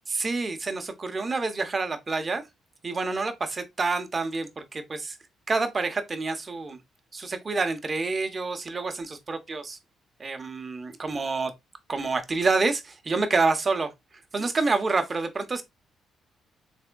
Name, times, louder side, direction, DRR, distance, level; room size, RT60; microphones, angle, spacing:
voice 1, 0.1-2.4 2.8-5.2 5.5-6.8 7.1-9.8 10.2-11.5 11.9-13.9 14.3-15.6, right 3 dB, 30° right, 0.7 m, -28 dB
3.4 x 3.3 x 2.2 m
cardioid pair, 90°, 0 cm